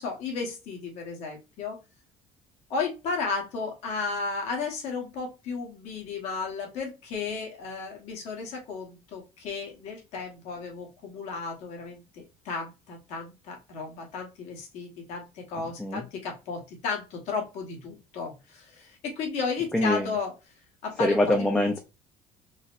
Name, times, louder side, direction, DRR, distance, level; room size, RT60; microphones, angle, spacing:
voice 1, 0.0-1.8 2.7-20.3 20.8-21.6, left 4 dB, 65° left, 1 dB, 1.2 m, -34 dB
voice 2, 19.7-20.1 21.0-21.8, left 1 dB, 5° left, 2 dB, 0.4 m, -24 dB
4.1 x 2.0 x 2.5 m, 0.27 s
cardioid pair, 150°, 13 cm